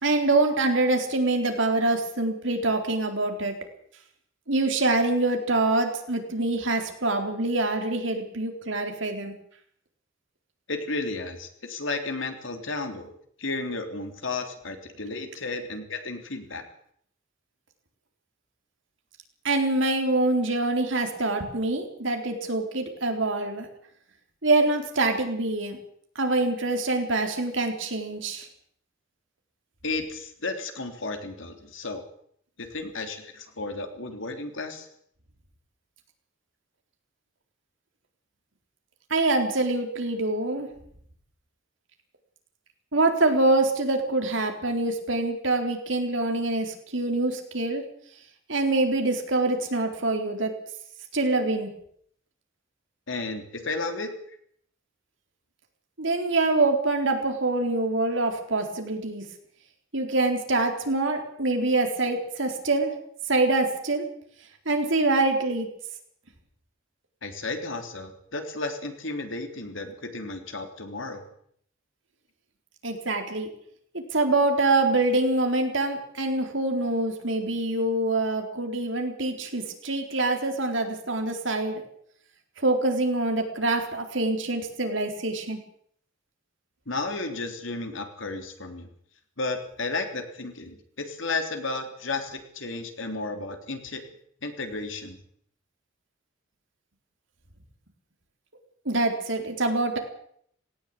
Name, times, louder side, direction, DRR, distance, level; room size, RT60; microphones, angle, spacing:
voice 1, 0.0-3.5 4.5-9.3 19.4-23.7 24.4-25.8 26.2-28.5 39.1-40.7 42.9-47.8 48.5-50.5 51.1-51.7 56.0-59.2 59.9-62.9 63.3-64.0 64.7-65.7 72.8-73.5 73.9-81.8 82.6-85.6 98.9-100.0, right 2 dB, 65° right, 4 dB, 4.0 m, -25 dB
voice 2, 10.7-13.1 13.4-16.6 29.8-32.0 32.6-34.9 53.1-54.1 67.2-71.2 86.9-88.9 89.4-90.8 91.0-94.0 94.4-95.2, left 3 dB, 70° left, 5 dB, 3.4 m, -33 dB
18.0 x 18.0 x 8.6 m, 0.66 s
head